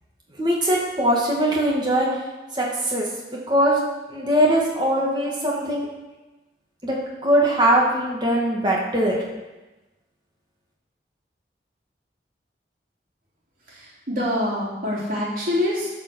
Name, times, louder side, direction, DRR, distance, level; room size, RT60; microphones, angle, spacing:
voice 1, 0.4-2.2 2.5-3.1 3.5-3.8 4.1-5.9 6.8-9.2, right 1 dB, 25° right, -3 dB, 2.2 m, -21 dB
voice 2, 13.7-15.9, left 1 dB, 50° right, -5 dB, 3.5 m, -25 dB
11.0 x 5.6 x 7.1 m, 1.1 s
head